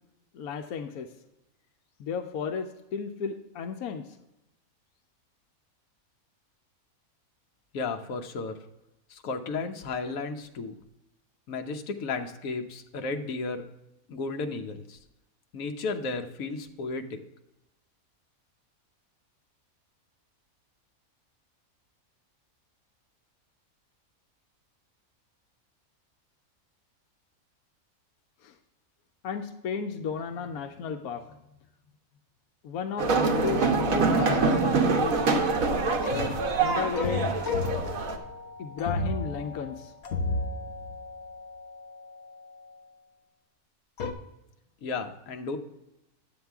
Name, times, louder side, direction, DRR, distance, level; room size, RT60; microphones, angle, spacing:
voice 1, 0.3-1.1 2.0-4.1 28.4-28.5 29.2-31.4 32.6-35.5 36.6-37.3 38.6-39.9, left 6 dB, 90° left, 7 dB, 1.2 m, -33 dB
voice 2, 7.7-8.6 9.1-10.8 11.5-13.7 14.1-15.0 15.5-17.2 44.8-45.6, left 3 dB, 70° left, 4 dB, 1.3 m, -33 dB
sound 1, 33.0-38.2, right 4 dB, 70° right, 1.4 m, -25 dB
sound 2, 35.8-42.6 44.0-44.1, left 3 dB, 55° left, 0.9 m, -34 dB
9.6 x 8.1 x 3.5 m, 0.92 s
omnidirectional pair, 1.5 m